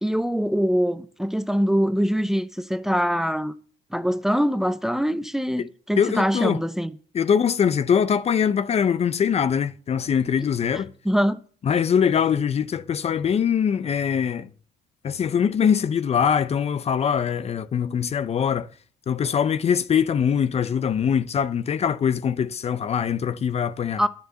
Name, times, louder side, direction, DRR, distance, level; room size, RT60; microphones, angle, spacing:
voice 1, 0.0-3.5 3.9-6.9 11.0-11.4 24.0-24.1, equal, ahead, 0.7 m, -23 dB
voice 2, 6.0-6.6 7.1-10.9 11.6-14.5 15.0-18.7 19.1-24.0, left 7 dB, 40° left, 0.6 m, -22 dB
10.5 x 7.1 x 7.7 m
cardioid pair, 110°, 17 cm